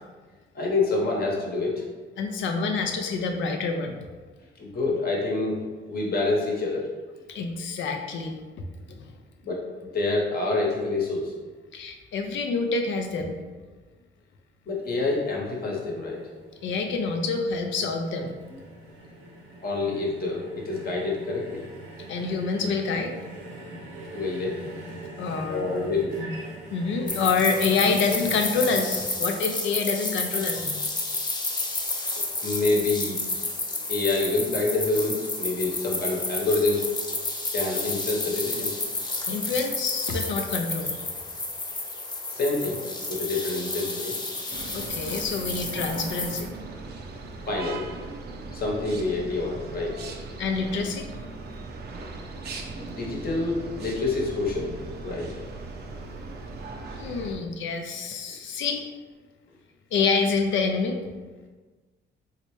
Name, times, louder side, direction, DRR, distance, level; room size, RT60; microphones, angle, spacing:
voice 1, 0.5-1.8 4.6-6.9 9.4-11.3 14.7-16.2 19.6-21.6 24.1-24.6 25.5-26.1 27.0-27.1 32.2-33.2 33.9-36.9 37.5-38.7 42.3-44.1 47.5-47.9 48.5-50.0 52.8-54.7 55.0-55.3, left 3 dB, 50° left, -2 dB, 1.0 m, -27 dB
voice 2, 2.2-4.0 7.3-8.4 8.9-9.1 11.7-13.4 16.6-18.3 22.1-23.1 25.2-25.9 26.2-26.3 26.7-30.9 39.3-41.0 44.7-46.5 50.4-51.1 56.9-58.9 59.9-61.0, left 4 dB, 75° left, 4 dB, 0.5 m, -27 dB
sound 1, 14.7-29.0, right 1 dB, 80° right, 0.8 m, -43 dB
sound 2, 27.1-46.4, left 2 dB, 20° left, 0.6 m, -31 dB
sound 3, 44.5-57.4, right 3 dB, 55° right, 0.5 m, -38 dB
3.2 x 2.8 x 3.1 m, 1.3 s
cardioid pair, 90°, 20 cm